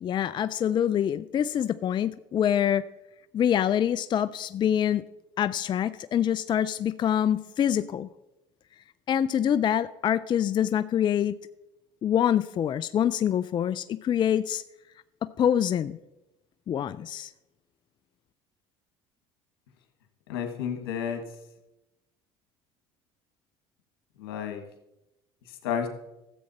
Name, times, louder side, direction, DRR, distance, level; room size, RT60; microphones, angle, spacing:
voice 1, 0.0-2.9 3.3-5.0 5.4-8.1 9.1-11.3 12.0-14.6 15.2-16.0 16.7-17.3, left 9 dB, 40° left, 15 dB, 0.4 m, -25 dB
voice 2, 20.3-21.2 24.2-24.6 25.6-25.9, left 8 dB, 90° left, 6 dB, 1.6 m, -31 dB
13.5 x 7.7 x 4.2 m, 0.94 s
supercardioid pair, 80°, 12 cm